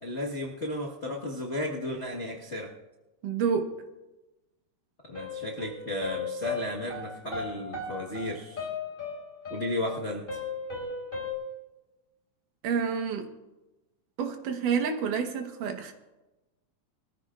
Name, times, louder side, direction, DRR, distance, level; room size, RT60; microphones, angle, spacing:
voice 1, 0.0-2.7 5.1-8.7 9.5-10.4, left 1 dB, 50° left, -4 dB, 0.8 m, -34 dB
voice 2, 3.2-3.7 12.6-13.3 14.2-15.9, right 6 dB, 90° right, 5 dB, 2.9 m, -28 dB
sound 1, 5.1-11.3, left 4 dB, 15° left, 3.2 m, -36 dB
23.0 x 14.0 x 2.4 m, 1.1 s
omnidirectional pair, 3.6 m